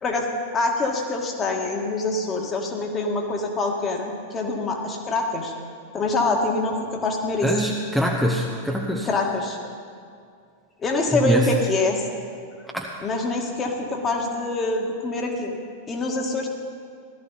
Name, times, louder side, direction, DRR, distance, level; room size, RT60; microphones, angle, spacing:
voice 1, 0.5-5.5 5.9-7.5 9.0-9.6 10.8-12.0 13.0-15.6 15.9-16.5, left 2 dB, 25° left, 1 dB, 1.9 m, -25 dB
voice 2, 7.4-9.1 11.1-11.5 12.7-12.8, equal, ahead, -1 dB, 0.9 m, -23 dB
17.0 x 12.5 x 4.2 m, 2.3 s
figure-of-eight pair, 90°, 0 cm